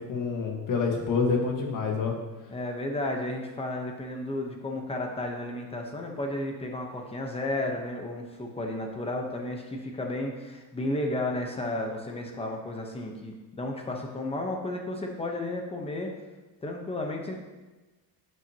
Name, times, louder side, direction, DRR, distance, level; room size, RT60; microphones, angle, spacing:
voice 1, 0.1-2.1, left 4 dB, 55° left, 1 dB, 1.7 m, -27 dB
voice 2, 2.5-16.1 16.6-17.4, left 1 dB, 15° left, 2 dB, 1.0 m, -33 dB
11.5 x 7.9 x 3.0 m, 1.2 s
cardioid pair, 170°, 39 cm